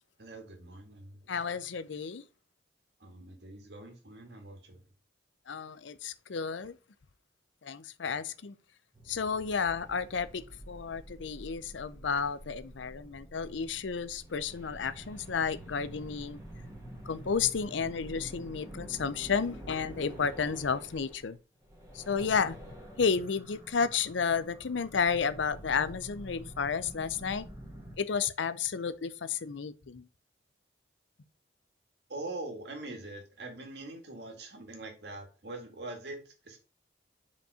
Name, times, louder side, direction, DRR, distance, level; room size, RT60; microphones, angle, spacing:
voice 1, 0.2-1.3 3.0-4.8 8.0-8.2 32.1-36.6, right 2 dB, 65° right, 2.1 m, -43 dB
voice 2, 1.3-2.2 5.5-6.8 7.6-8.6 9.1-16.4 17.0-21.4 21.9-22.6 23.0-27.5 28.0-30.1, left 6 dB, 85° left, 0.6 m, -32 dB
sound 1, 8.9-21.3 21.6-28.0, equal, 15° right, 1.8 m, -48 dB
5.3 x 5.2 x 4.9 m
head